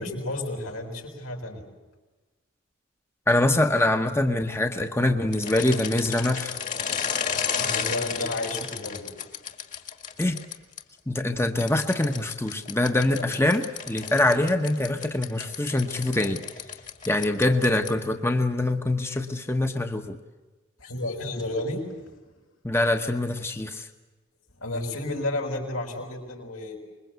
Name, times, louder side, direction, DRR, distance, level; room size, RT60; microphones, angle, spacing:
voice 1, 0.0-1.6 7.5-9.1 13.2-13.3 20.8-22.1 24.6-26.8, left 2 dB, 85° left, 1 dB, 6.2 m, -32 dB
voice 2, 3.3-6.6 10.2-10.4 11.1-16.4 17.1-20.2 22.6-23.9, left 1 dB, 10° left, 6 dB, 1.0 m, -24 dB
sound 1, 5.3-10.8 11.6-18.1, left 7 dB, 35° left, 1.9 m, -33 dB
26.0 x 22.0 x 8.2 m, 1.2 s
head